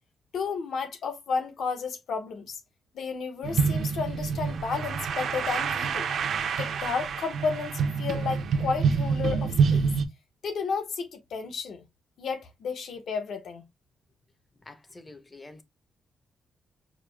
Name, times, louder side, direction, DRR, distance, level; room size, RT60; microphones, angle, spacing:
voice 1, 0.3-2.6 2.9-6.1 6.6-9.9 10.4-11.8 12.2-13.6, left 5 dB, 70° left, 1.0 m, -32 dB
sound 1, 3.4-10.0, right 5 dB, 70° right, 0.6 m, -27 dB
voice 2, 14.6-15.6, left 2 dB, 20° left, 0.6 m, -47 dB
4.9 x 2.1 x 3.2 m
wide cardioid pair, 140°, 0 cm